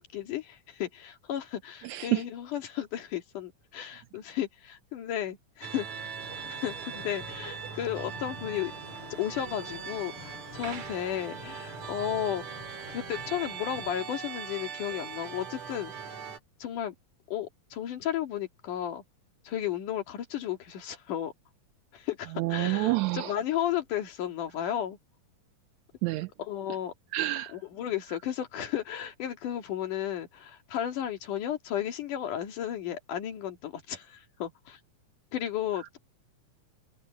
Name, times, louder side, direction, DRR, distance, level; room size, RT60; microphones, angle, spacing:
voice 1, 0.0-8.7 9.2-12.4 12.9-15.9 16.6-16.9 17.3-19.0 19.5-21.3 21.9-25.0 26.4-26.9 27.5-34.8 35.3-36.0, left 10 dB, 85° left, 3.7 m, -34 dB
voice 2, 1.8-2.2 22.3-23.4 26.0-26.3 27.1-27.6, right 19 dB, 80° right, 1.8 m, -28 dB
sound 1, 5.6-16.4, right 6 dB, 65° right, 3.7 m, -40 dB
sound 2, 6.2-13.9, left 3 dB, 45° left, 6.1 m, -48 dB
omnidirectional pair, 3.5 m